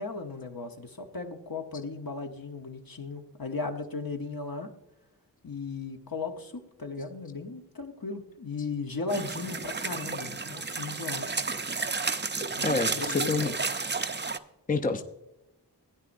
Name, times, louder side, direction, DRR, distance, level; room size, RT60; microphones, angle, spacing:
voice 1, 0.0-4.7 5.4-11.3 12.6-13.6, left 3 dB, 60° left, 4 dB, 1.1 m, -36 dB
sound 1, 9.1-14.4, right 4 dB, 25° right, 0.5 m, -32 dB
voice 2, 12.6-13.5 14.7-15.0, left 3 dB, 20° left, 6 dB, 0.6 m, -27 dB
16.0 x 9.7 x 2.6 m, 0.92 s
wide cardioid pair, 60°, 40 cm